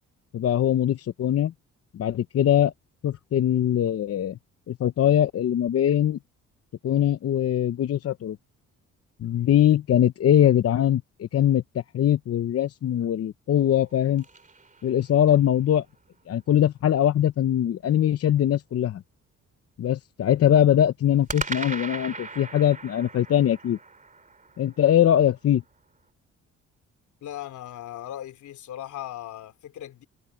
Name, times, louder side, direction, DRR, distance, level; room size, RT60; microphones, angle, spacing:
voice 1, 0.3-1.5 1.9-2.7 3.0-4.4 4.7-6.2 6.8-8.4 9.2-14.2 14.8-15.9 16.3-19.0 19.8-23.8 24.6-25.6, left 11 dB, 50° left, 0.8 m, -22 dB
sound 1, 13.6-15.5 21.3-25.6, right 4 dB, 25° right, 2.9 m, -38 dB
voice 2, 27.2-30.1, left 12 dB, 75° left, 3.3 m, -38 dB
cardioid pair, 90°, 30 cm